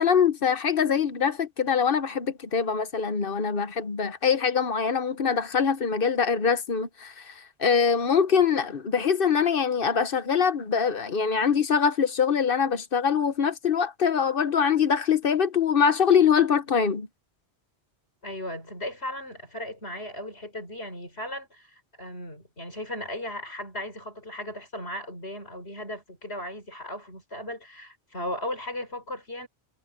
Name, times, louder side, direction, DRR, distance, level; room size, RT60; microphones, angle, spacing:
voice 1, 0.0-7.1 7.6-17.1, left 6 dB, 60° left, 1.2 m, -23 dB
voice 2, 18.2-29.5, left 1 dB, 85° left, 6.8 m, -36 dB
omnidirectional pair, 1.0 m